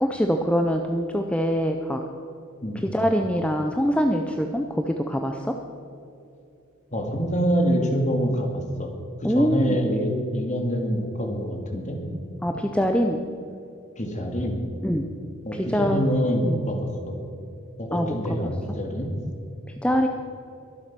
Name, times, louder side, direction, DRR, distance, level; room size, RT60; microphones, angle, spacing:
voice 1, 0.0-2.0 2.8-5.5 9.2-9.8 12.4-13.2 14.8-15.1 15.5-16.0 16.4-16.6 17.9-18.1 18.4-18.5 19.8-20.1, equal, 5° left, 4 dB, 0.6 m, -24 dB
voice 2, 6.9-8.9 9.2-12.0 14.0-14.6 15.4-17.2 17.8-19.1, equal, 35° left, 3 dB, 2.1 m, -26 dB
22.5 x 7.7 x 6.0 m, 2.7 s
head